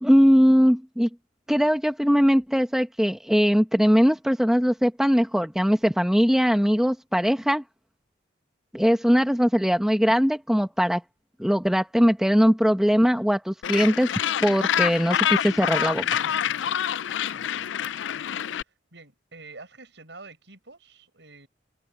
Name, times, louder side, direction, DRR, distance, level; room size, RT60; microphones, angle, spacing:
voice 1, 0.0-1.1 1.5-7.6 8.7-11.0 11.4-14.1 14.4-16.2, equal, 5° right, 1.1 m, -20 dB
Gull seagull, 13.6-18.6, left 9 dB, 90° left, 0.4 m, -26 dB
voice 2, 17.3-17.9 18.7-21.5, right 3 dB, 75° right, 7.1 m, -48 dB
head